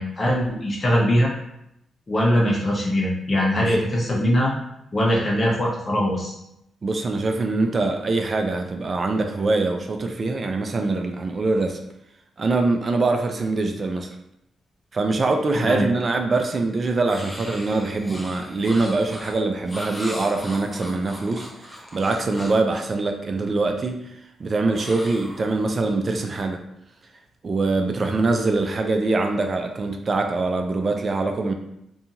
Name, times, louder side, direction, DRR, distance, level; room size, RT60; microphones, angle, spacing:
voice 1, 0.0-1.3 2.1-4.5 4.9-6.3 15.5-15.9, equal, 35° left, -3 dB, 0.9 m, -21 dB
voice 2, 6.8-11.8 12.4-14.2 14.9-24.0 24.4-26.6 27.4-31.5, right 3 dB, 45° right, 4 dB, 0.3 m, -23 dB
sound 1, 17.1-22.7 24.7-25.9, equal, 15° left, 0.6 m, -38 dB
2.7 x 2.7 x 2.5 m, 0.81 s
cardioid pair, 70°, 0 cm